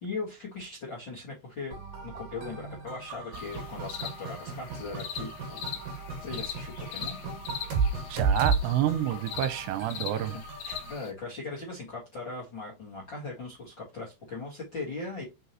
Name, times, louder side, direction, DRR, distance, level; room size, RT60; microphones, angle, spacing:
voice 1, 0.0-1.7 2.0-7.2 10.1-15.2, left 3 dB, 50° left, 1.4 m, -39 dB
sound 1, 1.7-10.9, right 4 dB, 55° right, 3.5 m, -34 dB
sound 2, 3.3-11.1, left 9 dB, 75° left, 1.9 m, -41 dB
voice 2, 8.1-10.4, right 12 dB, 90° right, 2.9 m, -28 dB
6.1 x 5.5 x 3.0 m
omnidirectional pair, 5.0 m